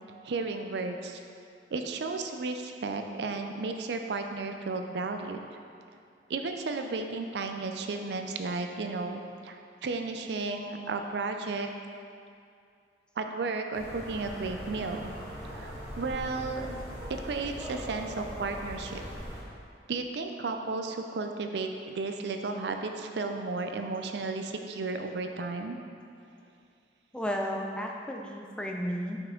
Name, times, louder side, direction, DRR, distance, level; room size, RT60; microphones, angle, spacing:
voice 1, 0.2-1.2 1.7-5.6 6.3-11.7 13.2-15.1 15.5-16.8 17.1-19.3 19.9-25.8, right 3 dB, 65° right, 5 dB, 0.4 m, -34 dB
sound 1, 13.7-19.4, equal, 20° right, 1.6 m, -41 dB
voice 2, 27.1-29.2, equal, 5° left, 1 dB, 0.4 m, -33 dB
5.7 x 5.6 x 3.8 m, 2.3 s
head